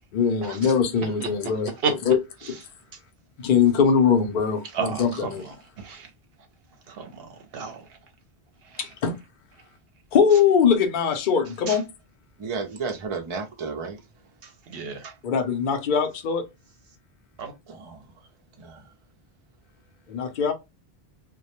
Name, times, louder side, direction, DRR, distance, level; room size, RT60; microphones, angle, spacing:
voice 1, 0.1-1.7 2.1-2.2 3.4-5.4 8.8-9.2 10.1-11.9 15.2-16.4 20.1-20.5, left 6 dB, 55° left, 0.6 m, -21 dB
voice 2, 4.7-6.1 6.9-7.3 7.5-7.8 8.6-8.8 11.7-11.8 14.4-15.1 17.4-17.5, right 5 dB, 70° right, 0.8 m, -32 dB
voice 3, 12.4-14.0 17.7-18.0 18.6-18.9, right 5 dB, 55° right, 0.3 m, -33 dB
2.1 x 2.0 x 2.8 m
omnidirectional pair, 1.1 m